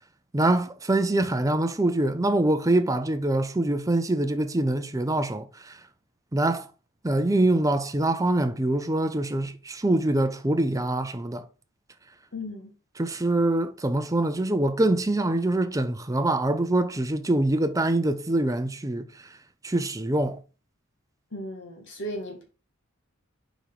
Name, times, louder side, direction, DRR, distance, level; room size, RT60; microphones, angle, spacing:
voice 1, 0.3-5.7 6.3-6.7 7.0-11.4 13.0-19.1 19.6-20.4, right 1 dB, 15° right, 0.6 m, -24 dB
voice 2, 12.3-12.7 21.3-22.4, equal, 60° left, 1.7 m, -36 dB
5.1 x 4.7 x 5.2 m
head